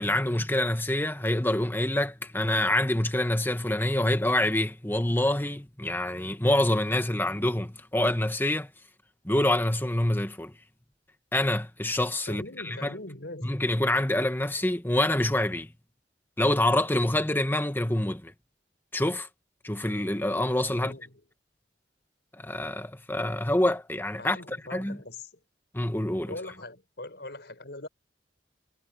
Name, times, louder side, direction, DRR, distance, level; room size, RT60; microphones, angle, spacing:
voice 1, 0.0-8.7 9.2-10.5 11.3-12.9 13.4-15.7 16.4-18.3 18.9-19.3 19.6-20.9 22.4-25.0 25.7-26.4, left 1 dB, 10° left, 1.6 m, -26 dB
voice 2, 12.3-13.6 20.8-21.2 24.2-25.3 26.3-27.9, left 2 dB, 65° left, 5.8 m, -41 dB
head